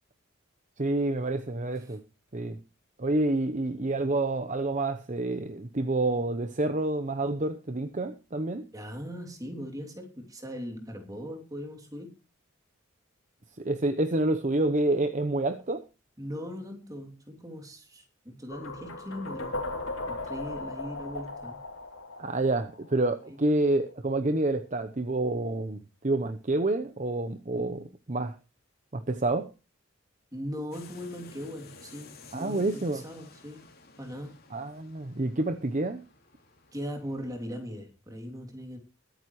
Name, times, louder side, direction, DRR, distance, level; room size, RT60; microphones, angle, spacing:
voice 1, 0.8-2.0 2.3-2.6 3.0-8.7 13.6-15.8 22.2-28.4 28.9-29.5 32.3-33.0 34.5-36.0, right 2 dB, 35° right, 0.8 m, -28 dB
voice 2, 8.7-12.2 16.2-19.7 20.1-21.6 23.2-23.4 30.3-33.7 34.0-34.3 36.7-38.8, equal, 15° right, 2.8 m, -39 dB
sound 1, 18.5-23.4, left 2 dB, 75° left, 2.9 m, -37 dB
sound 2, 30.7-37.3, left 4 dB, 50° left, 3.0 m, -53 dB
21.5 x 9.1 x 3.1 m
head